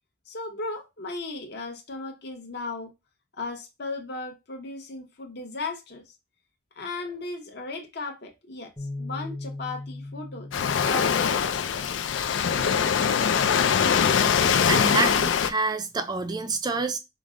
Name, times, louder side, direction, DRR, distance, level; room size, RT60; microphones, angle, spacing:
voice 1, 0.3-2.9 3.4-6.0 6.8-8.7 9.0-10.5 10.9-12.0, left 3 dB, 55° left, 0.9 m, -36 dB
sound 1, 8.8-15.0, left 2 dB, 10° left, 0.7 m, -41 dB
Waves surf, 10.5-15.5, left 7 dB, 75° left, 0.4 m, -22 dB
voice 2, 14.7-17.0, right 3 dB, 20° right, 0.4 m, -27 dB
5.0 x 2.1 x 3.6 m
head